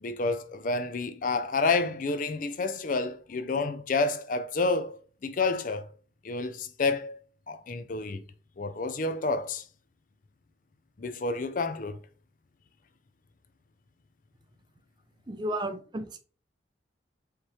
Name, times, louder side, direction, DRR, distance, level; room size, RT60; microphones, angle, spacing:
voice 1, 0.0-5.9 6.2-7.2 7.5-8.2 8.6-9.6 11.0-12.0, left 3 dB, 45° left, 0.5 m, -29 dB
voice 2, 15.3-16.2, right 1 dB, 25° right, 0.5 m, -33 dB
5.0 x 3.1 x 2.9 m
head